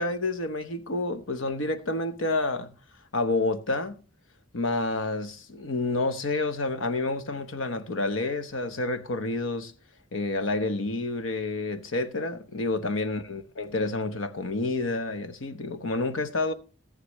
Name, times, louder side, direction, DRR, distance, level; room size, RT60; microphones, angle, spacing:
voice 1, 0.0-2.7 3.1-4.0 4.5-9.7 10.1-16.5, left 2 dB, 90° left, 1.0 m, -29 dB
14.0 x 9.8 x 3.1 m
head